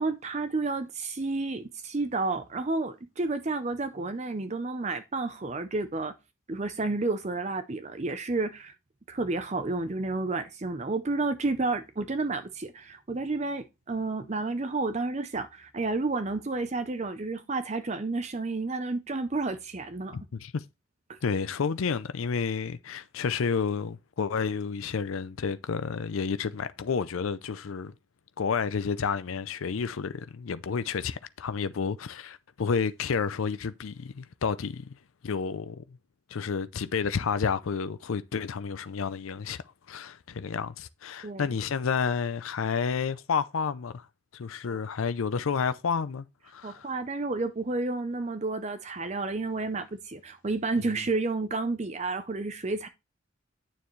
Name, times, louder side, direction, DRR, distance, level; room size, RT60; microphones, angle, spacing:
voice 1, 0.0-6.1 6.5-8.7 9.1-20.2 21.1-21.2 41.2-41.5 44.7-44.8 46.6-52.9, right 3 dB, 35° right, 0.6 m, -31 dB
voice 2, 20.1-20.6 21.2-27.9 28.4-35.0 35.2-36.0 36.3-39.6 39.9-44.1 44.3-46.3 46.5-46.9, left 6 dB, 80° left, 0.5 m, -30 dB
9.2 x 6.9 x 3.1 m
head